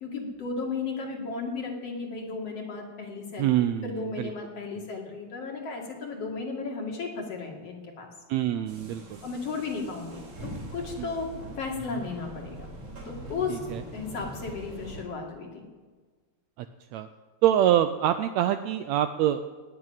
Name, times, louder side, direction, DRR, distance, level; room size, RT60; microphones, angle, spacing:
voice 1, 0.0-8.1 9.2-12.7 13.1-13.6 13.9-15.7, left 4 dB, 55° left, 1 dB, 2.9 m, -35 dB
voice 2, 3.4-4.3 8.3-9.2 11.0-11.1 13.5-13.8 16.6-16.7 16.9-17.1 17.4-19.4, right 11 dB, 80° right, 9 dB, 1.7 m, -25 dB
sound 1, 8.7-15.0, right 1 dB, 55° right, 4.2 m, -42 dB
19.0 x 6.4 x 8.8 m, 1.4 s
omnidirectional pair, 3.5 m